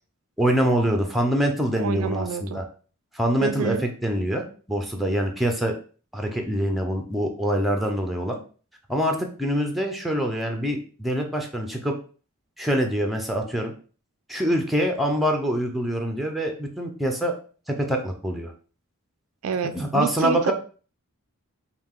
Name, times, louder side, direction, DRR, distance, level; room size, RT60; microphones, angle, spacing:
voice 1, 0.4-2.7 3.1-5.7 6.1-8.4 8.9-11.9 12.6-13.7 14.3-17.3 17.7-18.5 19.7-20.5, equal, ahead, 3 dB, 0.7 m, -25 dB
voice 2, 1.8-2.6 3.4-3.9 19.4-20.5, right 5 dB, 70° right, 11 dB, 0.4 m, -28 dB
5.2 x 2.4 x 3.7 m, 0.39 s
head